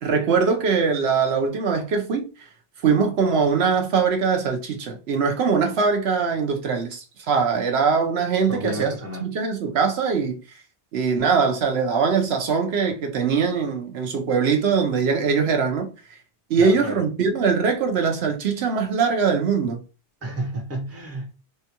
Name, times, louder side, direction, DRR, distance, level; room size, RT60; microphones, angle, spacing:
voice 1, 0.0-2.3 2.8-8.9 9.2-10.4 10.9-15.9 16.5-19.8, right 5 dB, 70° right, 0.9 m, -22 dB
voice 2, 8.5-9.3 16.6-17.0 20.2-21.3, right 1 dB, 15° right, 0.7 m, -31 dB
3.6 x 2.2 x 2.8 m
omnidirectional pair, 1.2 m